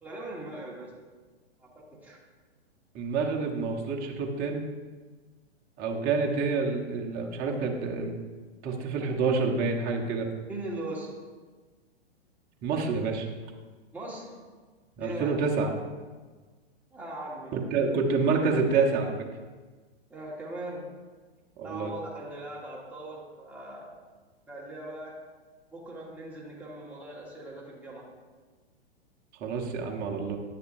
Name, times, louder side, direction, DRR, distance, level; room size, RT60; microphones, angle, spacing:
voice 1, 0.0-0.9 1.6-2.2 10.5-11.1 13.9-14.4 15.0-15.3 16.9-17.6 20.1-20.9 21.6-24.0 24.5-25.2 25.7-28.1, right 1 dB, 5° right, -5 dB, 1.7 m, -40 dB
voice 2, 2.9-4.6 5.8-8.2 8.6-10.3 12.6-13.3 15.0-15.7 17.5-19.1 21.6-21.9 29.4-30.4, right 4 dB, 30° right, 0 dB, 1.1 m, -28 dB
10.0 x 6.6 x 2.7 m, 1.4 s
hypercardioid pair, 125°, 32 cm